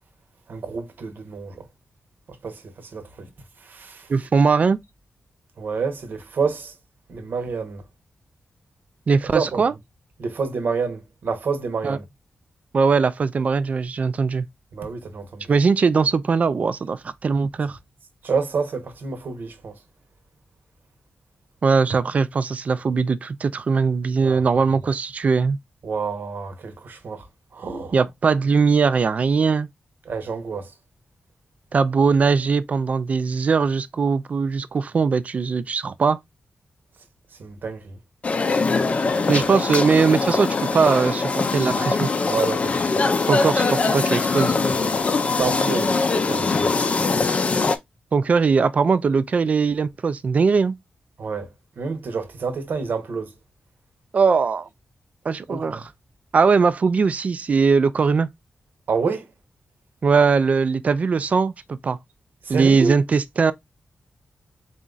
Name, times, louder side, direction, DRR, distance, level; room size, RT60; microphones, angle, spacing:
voice 1, 0.5-1.6 2.3-3.3 3.6-4.1 5.6-6.7 7.1-7.8 9.3-9.6 10.2-12.0 14.7-15.5 18.2-19.8 24.2-24.4 25.8-27.3 27.5-28.0 30.1-30.7 37.4-38.0 38.8-39.4 42.2-43.0 44.6-45.0 45.4-46.7 51.2-51.5 51.8-53.3 55.5-55.8 58.9-59.3 62.4-62.9, right 5 dB, 60° right, 0.9 m, -28 dB
voice 2, 4.1-4.8 9.1-9.7 11.8-12.0 12.7-14.5 15.5-17.8 21.6-25.6 27.9-29.7 31.7-36.2 39.3-42.1 43.3-44.5 48.1-50.8 54.1-54.7 55.3-55.8 56.3-58.3 60.0-62.0 62.5-63.5, right 5 dB, 40° right, 0.4 m, -20 dB
sound 1, 38.2-47.8, left 4 dB, 35° left, 0.5 m, -22 dB
4.2 x 2.4 x 3.8 m
wide cardioid pair, 155°, 4 cm